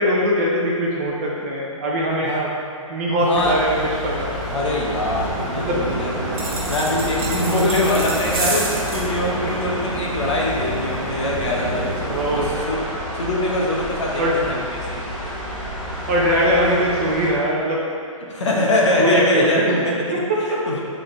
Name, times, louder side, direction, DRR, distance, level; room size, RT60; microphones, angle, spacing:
voice 1, 0.0-2.5 2.9-3.8 4.0-4.4 5.6-5.9 12.1-12.5 14.2-14.3 16.1-17.8 19.0-19.8 20.1-20.6, equal, 25° right, -4 dB, 0.7 m, -21 dB
voice 2, 3.2-3.6 4.5-6.3 6.7-12.8 13.1-15.0 18.2-20.2 20.5-20.8, left 1 dB, 55° left, -2 dB, 1.2 m, -23 dB
sound 1, 3.2-12.5, right 3 dB, 75° right, 1.1 m, -32 dB
sound 2, 3.3-17.3, equal, ahead, 1.2 m, -29 dB
sound 3, 6.3-9.1, right 3 dB, 40° right, 1.1 m, -29 dB
6.3 x 3.8 x 4.5 m, 2.3 s
hypercardioid pair, 170°, 18 cm